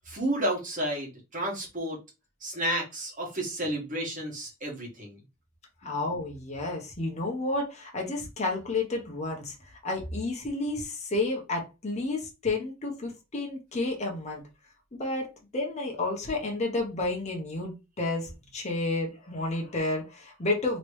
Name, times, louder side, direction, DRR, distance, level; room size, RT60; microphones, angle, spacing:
voice 1, 0.1-2.0 2.4-5.2 5.8-5.9, right 1 dB, 35° right, -2 dB, 1.5 m, -31 dB
voice 2, 5.8-9.5 9.8-14.4 14.9-15.3 15.5-20.8, left 2 dB, 30° left, 0 dB, 0.9 m, -31 dB
3.1 x 2.9 x 3.1 m, 0.26 s
head